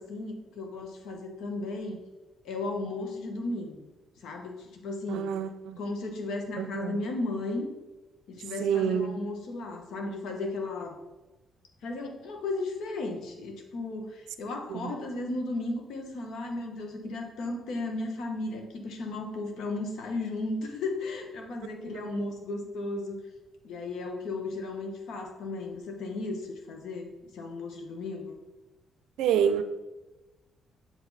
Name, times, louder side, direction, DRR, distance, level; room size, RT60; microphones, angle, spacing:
voice 1, 0.0-2.0 2.4-3.8 4.2-5.3 5.8-7.7 8.3-11.0 11.8-23.2 23.6-28.3, left 2 dB, 80° left, 1.3 m, -35 dB
voice 2, 5.1-5.8 6.6-6.9 8.6-9.1 14.7-14.9 21.8-22.2 29.2-29.6, right 8 dB, 90° right, 0.5 m, -28 dB
7.4 x 5.0 x 4.1 m
cardioid pair, 90°, 0 cm